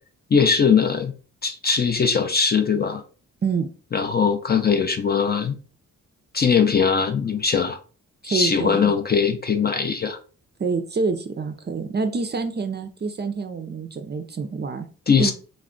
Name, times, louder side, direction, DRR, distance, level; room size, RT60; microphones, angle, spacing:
voice 1, 0.3-1.1 1.4-3.0 3.9-5.6 6.3-7.8 8.2-10.2 15.1-15.3, left 6 dB, 30° left, 7 dB, 0.4 m, -20 dB
voice 2, 8.2-8.9 10.6-14.9 15.2-15.3, right 4 dB, 30° right, 7 dB, 0.4 m, -27 dB
2.3 x 2.1 x 3.6 m, 0.38 s
cardioid pair, 65°, 33 cm